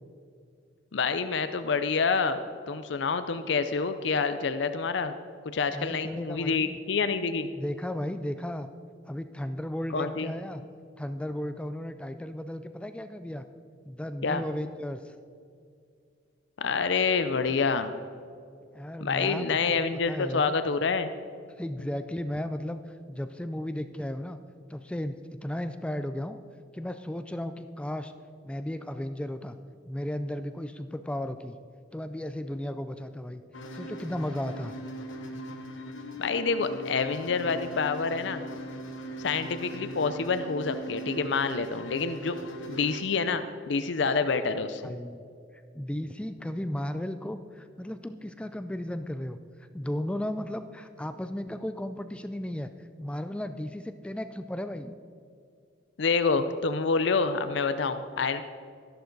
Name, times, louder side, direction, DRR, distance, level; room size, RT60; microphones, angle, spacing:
voice 1, 0.9-2.4 2.7-5.2 5.5-7.5 9.9-10.3 14.2-14.4 16.6-17.9 19.0-21.1 36.2-38.5 39.2-42.4 42.7-44.9 56.0-58.4, left 4 dB, 65° left, 11 dB, 0.5 m, -27 dB
voice 2, 5.7-6.8 7.5-8.7 9.1-10.6 11.0-13.4 13.8-15.1 18.7-19.8 20.1-20.6 21.6-24.4 24.7-26.4 26.7-28.1 28.4-29.6 29.8-31.6 31.9-33.4 33.7-34.7 44.0-45.2 45.7-55.0, left 1 dB, 5° left, 10 dB, 0.3 m, -35 dB
sound 1, 33.5-43.0, equal, 90° left, 1.1 m, -40 dB
13.0 x 11.0 x 4.0 m, 2.3 s
head